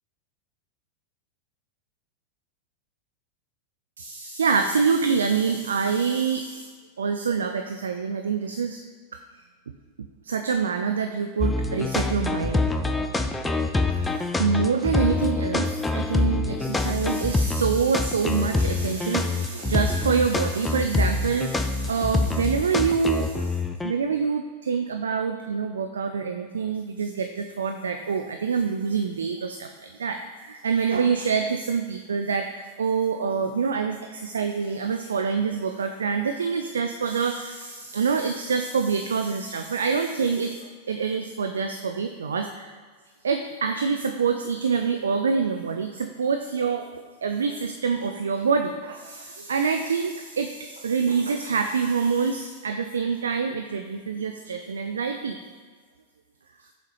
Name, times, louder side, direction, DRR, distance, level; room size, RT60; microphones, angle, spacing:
voice 1, 4.0-6.7 7.0-8.8 10.2-12.6 14.0-23.5 23.8-42.7 43.2-46.9 47.2-55.4, right 5 dB, 70° right, 6 dB, 0.3 m, -26 dB
sound 1, 11.4-23.9, left 3 dB, 10° left, 0.3 m, -25 dB
7.0 x 2.8 x 4.8 m, 1.5 s
figure-of-eight pair, 90°, 0 cm